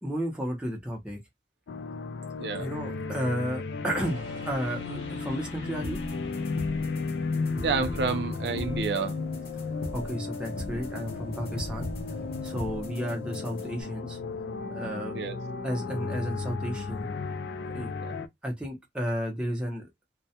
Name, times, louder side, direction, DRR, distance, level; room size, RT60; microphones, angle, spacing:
voice 1, 0.0-1.2 2.6-4.2 4.5-6.0 9.9-11.9 12.4-14.2 14.7-15.2 15.6-17.1 17.7-17.9 18.4-19.9, equal, 5° right, 0.7 m, -32 dB
sound 1, 1.7-18.3, left 4 dB, 80° left, 0.3 m, -34 dB
sound 2, 4.0-12.7, left 1 dB, 35° right, 0.9 m, -46 dB
sound 3, 5.8-13.8, equal, 60° left, 0.7 m, -41 dB
voice 2, 7.6-9.2 15.1-15.4 18.0-18.2, right 4 dB, 70° right, 0.5 m, -29 dB
2.1 x 2.1 x 2.8 m
head